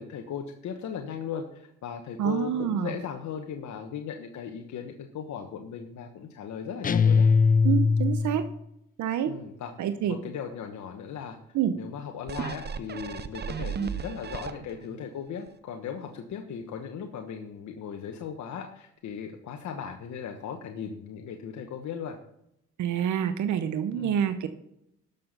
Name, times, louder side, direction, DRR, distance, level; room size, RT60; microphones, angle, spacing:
voice 1, 0.0-7.3 9.3-9.8 10.0-11.4 11.7-22.2 23.9-24.2, left 7 dB, 70° left, 4 dB, 1.2 m, -37 dB
voice 2, 2.2-2.9 7.6-8.4 9.0-9.3 9.8-10.2 11.5-11.7 22.8-24.5, right 9 dB, 75° right, 10 dB, 0.8 m, -27 dB
sound 1, 6.8-8.5, left 5 dB, 30° left, 0.5 m, -21 dB
sound 2, 12.3-15.0 15.5-15.6, right 7 dB, 35° right, 0.8 m, -35 dB
12.5 x 6.8 x 5.5 m, 0.79 s
cardioid pair, 90°, 30 cm